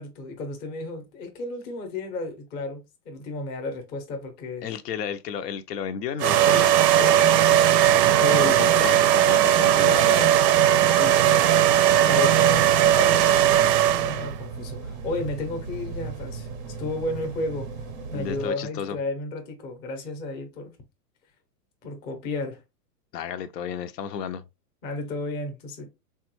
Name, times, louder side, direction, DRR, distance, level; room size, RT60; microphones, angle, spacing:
voice 1, 0.0-4.7 8.2-8.7 10.9-11.4 12.1-13.3 14.0-16.5 16.8-17.7 18.1-20.7 21.8-22.6 24.8-25.9, left 2 dB, 20° left, 0.5 m, -32 dB
voice 2, 4.6-7.3 8.4-10.3 18.1-19.0 23.1-24.4, left 8 dB, 85° left, 0.6 m, -33 dB
sound 1, 6.2-14.3, right 11 dB, 90° right, 0.5 m, -18 dB
sound 2, 12.5-18.5, right 5 dB, 30° right, 0.4 m, -36 dB
3.4 x 2.2 x 2.9 m
hypercardioid pair, 140°, 48 cm